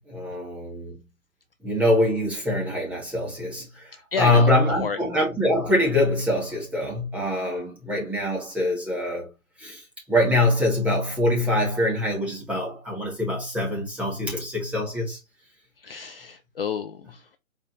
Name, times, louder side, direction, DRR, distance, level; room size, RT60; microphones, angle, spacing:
voice 1, 0.1-1.0 1.6-9.3 9.6-9.8 10.1-15.2, left 1 dB, 5° right, 0.9 m, -24 dB
voice 2, 4.1-5.0 15.8-17.3, left 6 dB, 45° left, 0.4 m, -31 dB
4.3 x 2.4 x 3.9 m
figure-of-eight pair, 135°, 42 cm